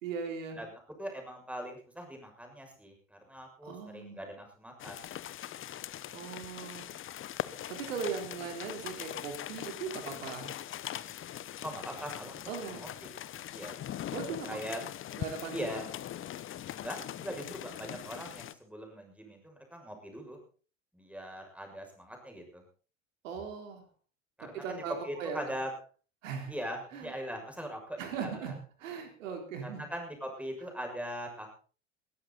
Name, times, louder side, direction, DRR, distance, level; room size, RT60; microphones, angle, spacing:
voice 1, 0.0-0.6 3.6-4.2 6.1-6.9 7.7-10.6 12.5-12.8 14.1-14.6 15.2-15.5 23.2-23.8 24.4-25.4 26.2-26.5 26.9-27.1 28.0-29.8, right 6 dB, 70° right, 4 dB, 4.0 m, -39 dB
voice 2, 1.0-5.1 11.6-12.4 12.6-13.1 13.5-13.8 14.5-14.8 15.5-15.8 16.8-20.4 20.9-22.6 24.4-25.7 26.5-28.5 29.6-31.5, equal, 5° right, 3 dB, 6.6 m, -41 dB
sound 1, 4.8-18.5, left 12 dB, 30° left, 0.9 m, -41 dB
21.5 x 14.0 x 4.1 m, 0.39 s
figure-of-eight pair, 75°, 40 cm